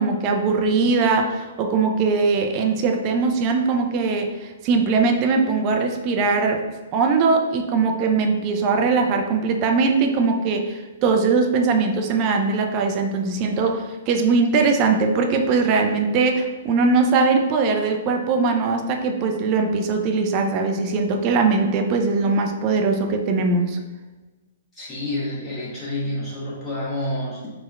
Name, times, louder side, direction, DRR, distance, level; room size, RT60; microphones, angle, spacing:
voice 1, 0.0-6.6 6.9-23.8, right 4 dB, 30° right, 4 dB, 0.3 m, -21 dB
voice 2, 24.7-27.5, left 1 dB, 20° left, -7 dB, 0.9 m, -28 dB
4.4 x 2.0 x 2.3 m, 1.2 s
figure-of-eight pair, 115°, 0 cm